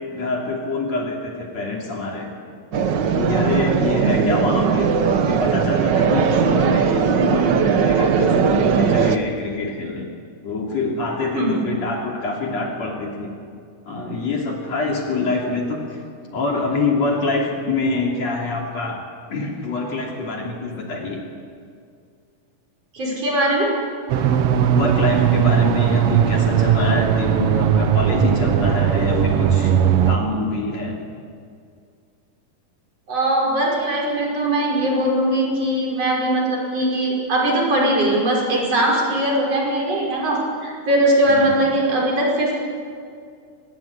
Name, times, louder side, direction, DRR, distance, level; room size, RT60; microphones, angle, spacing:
voice 1, 0.0-2.3 3.1-4.9 5.3-10.1 10.4-13.4 13.9-16.0 16.3-19.0 19.3-21.2 24.7-31.0 41.3-41.6, left 3 dB, 55° left, -1 dB, 4.1 m, -25 dB
sound 1, 2.7-9.2, right 6 dB, 90° right, 0.9 m, -19 dB
voice 2, 11.3-11.6 22.9-23.7 33.1-42.6, right 1 dB, 45° right, -2 dB, 6.6 m, -20 dB
sound 2, 24.1-30.2, right 8 dB, 65° right, 1.6 m, -18 dB
24.0 x 19.5 x 9.7 m, 2.3 s
omnidirectional pair, 3.8 m